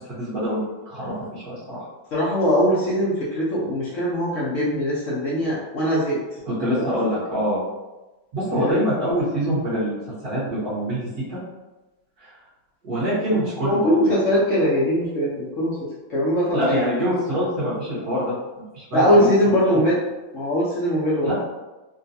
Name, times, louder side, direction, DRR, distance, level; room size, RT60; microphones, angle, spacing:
voice 1, 0.0-1.9 6.4-7.6 8.3-11.4 12.2-12.3 12.8-14.2 16.5-19.8 21.2-21.3, equal, 55° right, -10 dB, 1.6 m, -25 dB
voice 2, 2.1-6.2 6.7-6.9 8.5-8.8 13.6-15.7 16.1-16.7 18.9-20.0 20.3-21.3, equal, 65° left, -6 dB, 0.7 m, -21 dB
3.7 x 2.3 x 2.6 m, 1.1 s
omnidirectional pair, 2.1 m